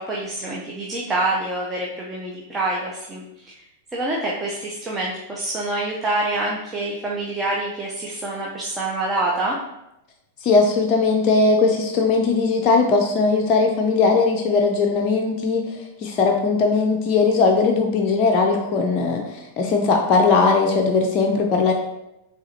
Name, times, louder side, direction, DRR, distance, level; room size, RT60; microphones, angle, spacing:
voice 1, 0.0-3.6 3.9-9.6, right 2 dB, 20° right, -4 dB, 0.7 m, -26 dB
voice 2, 10.4-21.7, left 4 dB, 40° left, 1 dB, 0.5 m, -19 dB
4.8 x 3.4 x 2.8 m, 0.89 s
hypercardioid pair, 100°, 0 cm